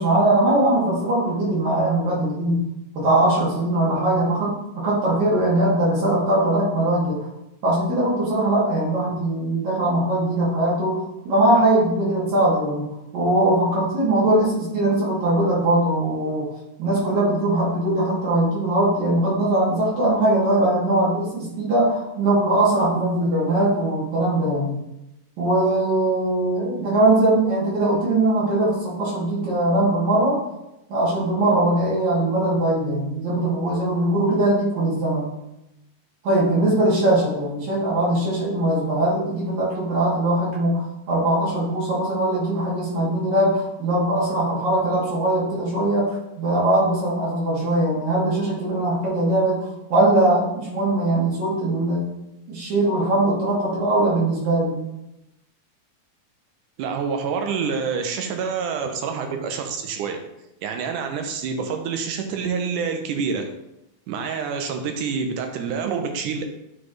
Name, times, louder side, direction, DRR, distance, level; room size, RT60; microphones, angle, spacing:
voice 1, 0.0-2.6 2.9-7.3 7.6-12.9 13.1-16.5 16.8-24.8 25.4-30.4 30.9-35.3 36.2-52.1 52.5-54.8, right 1 dB, 70° right, -7 dB, 3.7 m, -21 dB
voice 2, 56.8-60.2 60.6-63.5 64.1-66.4, right 5 dB, 85° right, 5 dB, 2.2 m, -27 dB
9.2 x 4.3 x 3.2 m, 0.89 s
omnidirectional pair, 3.6 m